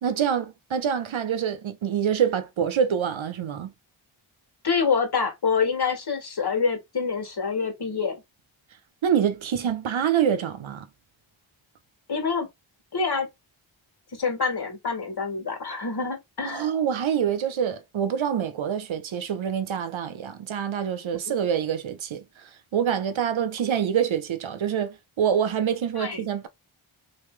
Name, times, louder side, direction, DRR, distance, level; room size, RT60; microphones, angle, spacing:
voice 1, 0.0-3.7 9.0-10.9 16.4-26.5, right 8 dB, 70° right, 0.8 m, -26 dB
voice 2, 4.6-8.2 12.1-12.5 12.9-13.3 14.1-16.7 21.3-21.4 26.0-26.3, left 5 dB, 50° left, 1.8 m, -26 dB
3.1 x 2.8 x 3.2 m
cardioid pair, 45°, 49 cm